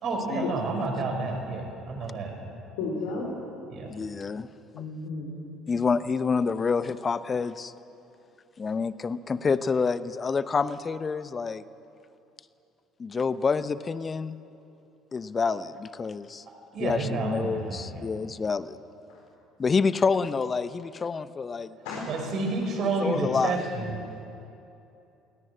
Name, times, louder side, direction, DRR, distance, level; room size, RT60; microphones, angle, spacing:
voice 1, 0.0-2.4 3.7-3.9 16.7-18.1 22.1-23.9, right 3 dB, 50° right, 2 dB, 5.7 m, -30 dB
voice 2, 2.8-3.3 4.7-5.4 19.1-19.2 21.8-22.0, left 3 dB, 65° left, -3 dB, 4.0 m, -33 dB
voice 3, 3.9-4.5 5.7-7.7 8.6-11.6 13.0-14.4 15.1-16.4 16.8-18.8 19.6-21.8 23.0-23.5, left 5 dB, 30° left, 15 dB, 0.9 m, -28 dB
22.0 x 17.5 x 8.9 m, 2.8 s
figure-of-eight pair, 60°, 0 cm